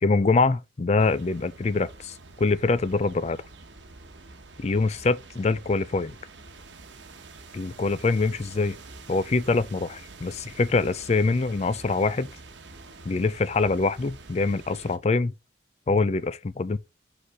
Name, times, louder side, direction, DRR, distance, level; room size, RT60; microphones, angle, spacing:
voice 1, 0.0-3.4 4.6-6.1 7.5-8.8 9.1-12.3 13.1-15.3 15.9-16.8, left 3 dB, 35° left, 0.4 m, -24 dB
sound 1, 1.0-15.0, right 3 dB, 85° right, 1.0 m, -47 dB
5.1 x 4.1 x 4.8 m
head